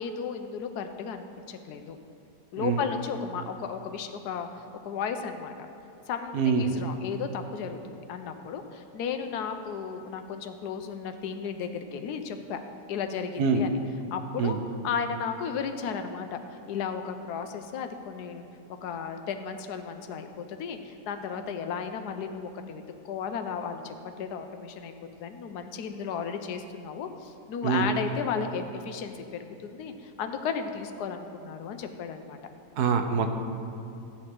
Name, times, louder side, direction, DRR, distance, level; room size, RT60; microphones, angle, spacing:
voice 1, 0.0-2.0 2.5-5.5 6.1-12.6 12.9-13.7 14.1-14.6 14.8-18.5 18.8-24.9 25.2-32.4, left 6 dB, 85° left, 7 dB, 1.2 m, -34 dB
voice 2, 6.3-6.8 13.4-13.6 14.4-14.6 27.6-27.9 32.8-33.4, right 5 dB, 80° right, 6 dB, 1.3 m, -25 dB
13.0 x 8.7 x 3.8 m, 2.6 s
omnidirectional pair, 1.7 m